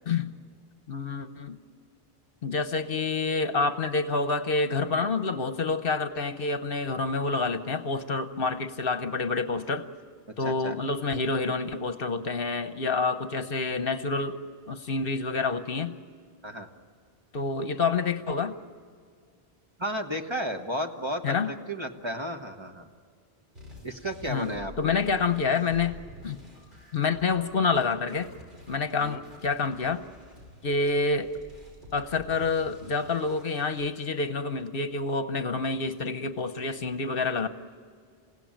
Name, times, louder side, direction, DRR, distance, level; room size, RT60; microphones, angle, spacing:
voice 1, 0.9-1.6 2.4-9.9 10.4-14.4 14.7-16.0 17.3-18.5 21.2-21.5 24.3-24.5 24.8-26.0 26.2-26.4 26.9-28.3 28.7-30.0 30.6-31.3 31.9-37.5, left 4 dB, 60° left, 10 dB, 1.1 m, -28 dB
voice 2, 10.4-10.8 16.4-16.7 19.8-22.9 23.8-25.0 29.0-29.2, equal, 25° right, 4 dB, 1.4 m, -33 dB
sound 1, 23.6-33.9, left 1 dB, 50° right, 5.3 m, -49 dB
28.5 x 17.0 x 9.1 m, 2.1 s
omnidirectional pair, 1.1 m